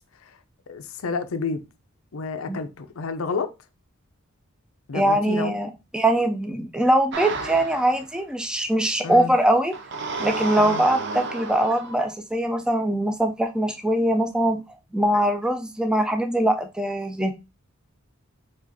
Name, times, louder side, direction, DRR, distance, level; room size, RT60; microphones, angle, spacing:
voice 1, 0.7-1.6 2.1-3.5 4.9-5.5 9.0-9.3 10.6-10.8, left 4 dB, 85° left, 0.6 m, -30 dB
voice 2, 4.9-9.7 10.2-14.6 14.9-17.3, right 1 dB, 5° right, 0.4 m, -22 dB
sound 1, 7.1-8.1 9.7-12.1, right 3 dB, 55° right, 0.6 m, -31 dB
4.9 x 2.4 x 4.0 m
head